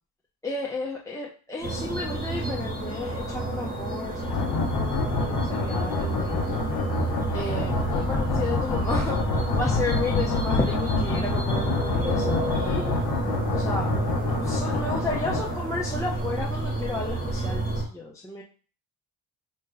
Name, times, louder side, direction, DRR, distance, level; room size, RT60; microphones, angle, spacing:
voice 1, 0.4-6.4 7.3-9.2 9.5-13.0 13.5-13.9 14.3-18.4, left 3 dB, 10° left, -4 dB, 0.4 m, -33 dB
sound 1, 1.6-17.8, right 2 dB, 20° right, 1.1 m, -30 dB
sound 2, 4.2-15.9, left 3 dB, 65° left, 1.1 m, -27 dB
5.4 x 2.5 x 3.8 m, 0.39 s
wide cardioid pair, 165°, 42 cm